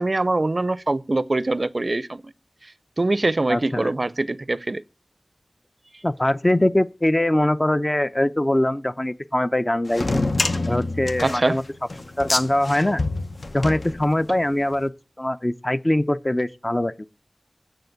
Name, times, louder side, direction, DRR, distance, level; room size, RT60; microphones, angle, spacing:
voice 1, 0.0-2.3 3.0-4.8 11.2-11.6, right 2 dB, 55° right, 0.4 m, -23 dB
voice 2, 3.5-3.9 6.0-10.0 10.7-11.6 12.2-13.0 13.5-14.9 15.2-17.1, left 1 dB, 30° left, 0.6 m, -22 dB
sound 1, 9.9-14.5, left 2 dB, 65° left, 0.8 m, -27 dB
7.6 x 6.9 x 8.0 m
wide cardioid pair, 50°, 0 cm